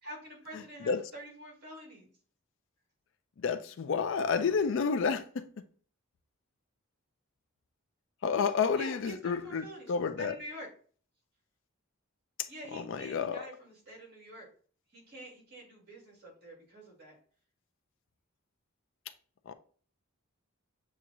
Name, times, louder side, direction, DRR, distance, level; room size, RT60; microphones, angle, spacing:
voice 1, 0.0-2.1 8.7-10.7 12.5-14.5 14.9-17.2, equal, 50° right, 2.4 m, -47 dB
voice 2, 3.4-5.5 8.2-10.3 12.7-13.4 19.5-19.6, left 5 dB, 55° left, 0.4 m, -30 dB
7.3 x 2.4 x 2.9 m
head